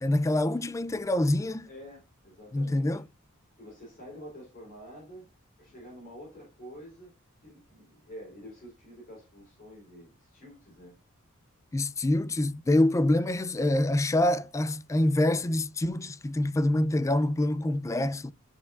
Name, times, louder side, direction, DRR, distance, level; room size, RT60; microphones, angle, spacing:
voice 1, 0.0-1.7 2.5-3.0 11.7-18.3, left 1 dB, 15° left, 0.3 m, -26 dB
voice 2, 1.6-3.0 3.6-5.3 5.6-7.1 7.4-11.0, equal, 40° left, 3.6 m, -48 dB
11.0 x 4.4 x 2.4 m
head